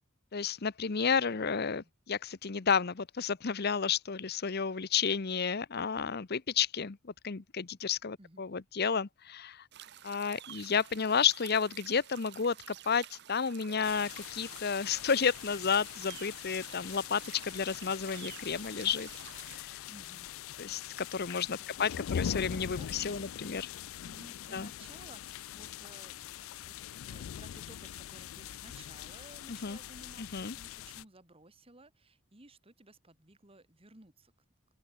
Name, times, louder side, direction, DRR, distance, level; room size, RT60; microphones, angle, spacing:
voice 1, 0.3-9.7 10.0-19.1 19.5-19.8 20.6-23.7 24.5-24.7 29.5-29.8 30.2-30.5, left 6 dB, 50° left, 0.8 m, -31 dB
voice 2, 1.3-1.9 8.2-8.4 19.9-20.3 21.6-23.4 24.0-26.2 26.6-34.3, right 2 dB, 30° right, 2.2 m, -57 dB
sound 1, 9.7-19.6, right 11 dB, 55° right, 0.8 m, -51 dB
sound 2, 13.8-31.0, left 9 dB, 80° left, 0.4 m, -42 dB
open air
head